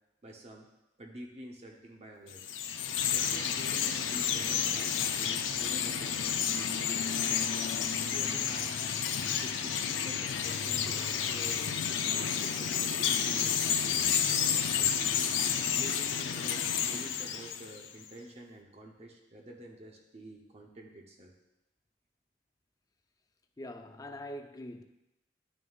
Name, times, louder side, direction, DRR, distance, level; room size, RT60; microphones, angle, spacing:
voice 1, 0.2-0.7 1.0-2.5 3.1-7.5 8.0-8.8 9.4-11.7 12.0-15.1 15.8-21.3, right 1 dB, 35° right, 0.8 m, -48 dB
Chirp tweet, 2.3-17.9, left 8 dB, 85° left, 0.5 m, -30 dB
voice 2, 23.6-24.8, left 1 dB, 20° left, 0.4 m, -43 dB
11.0 x 6.3 x 2.4 m
head